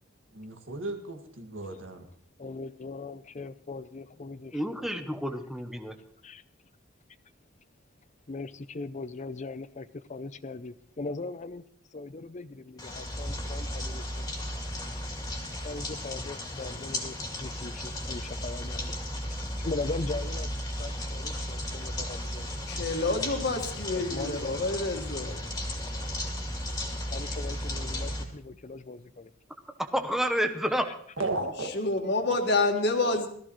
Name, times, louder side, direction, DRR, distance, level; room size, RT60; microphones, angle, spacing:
voice 1, 0.3-2.1 31.2-31.7, right 2 dB, 65° right, 2.0 m, -34 dB
voice 2, 2.4-5.0 6.2-6.4 8.3-11.6 11.9-14.3 15.6-19.0 19.6-22.6 24.1-24.6 27.1-29.3 30.8-30.9 33.0-33.3, left 3 dB, 35° left, 0.5 m, -39 dB
voice 3, 4.5-5.9 29.8-30.9, equal, ahead, 0.8 m, -29 dB
sound 1, 12.8-28.2, left 1 dB, 20° left, 2.3 m, -35 dB
voice 4, 22.7-25.4 31.6-33.3, left 2 dB, 55° left, 1.9 m, -28 dB
17.5 x 14.0 x 3.1 m
head